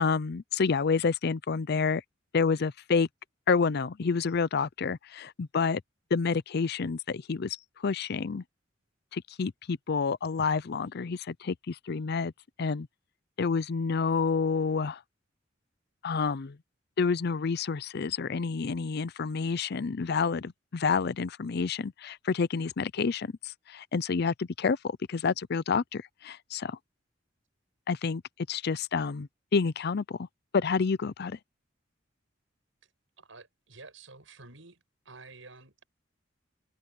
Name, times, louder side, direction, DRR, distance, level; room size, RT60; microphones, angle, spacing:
voice 1, 0.0-2.0 2.3-3.1 3.5-5.8 6.1-8.4 9.1-12.3 12.6-12.9 13.4-15.0 16.0-16.6 17.0-26.8 27.9-28.2 28.5-30.3 30.5-31.4, left 5 dB, 55° left, 0.5 m, -29 dB
voice 2, 33.2-35.8, right 3 dB, 85° right, 6.6 m, -51 dB
open air
head